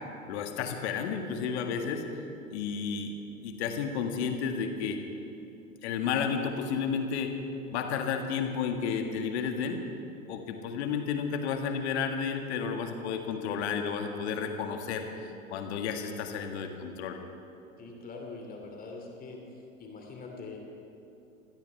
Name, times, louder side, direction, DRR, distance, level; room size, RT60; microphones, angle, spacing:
voice 1, 0.3-2.3 2.5-3.1 3.4-5.0 5.8-7.3 7.7-9.9 10.3-15.1 15.5-17.2, left 6 dB, 55° left, 4 dB, 2.0 m, -32 dB
voice 2, 17.8-19.4 19.8-20.6, left 3 dB, 20° left, 0 dB, 2.8 m, -43 dB
23.0 x 16.0 x 3.5 m, 2.8 s
figure-of-eight pair, 95°, 41 cm